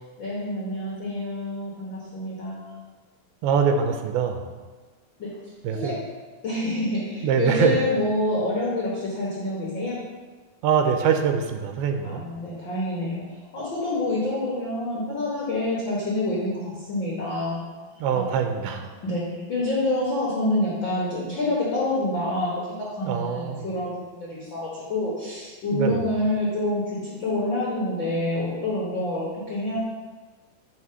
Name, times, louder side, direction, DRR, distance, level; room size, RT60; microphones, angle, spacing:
voice 1, 0.2-2.8 5.2-5.3 5.7-6.0 6.4-10.0 12.0-13.2 13.5-17.6 18.1-18.2 19.0-29.8, left 1 dB, 90° left, -6 dB, 1.0 m, -27 dB
voice 2, 3.4-4.5 5.6-6.0 7.2-7.8 10.6-12.2 18.0-18.9 23.1-23.7 25.7-26.0, right 7 dB, 85° right, 5 dB, 2.5 m, -23 dB
5.7 x 4.7 x 5.5 m, 1.3 s
omnidirectional pair, 4.3 m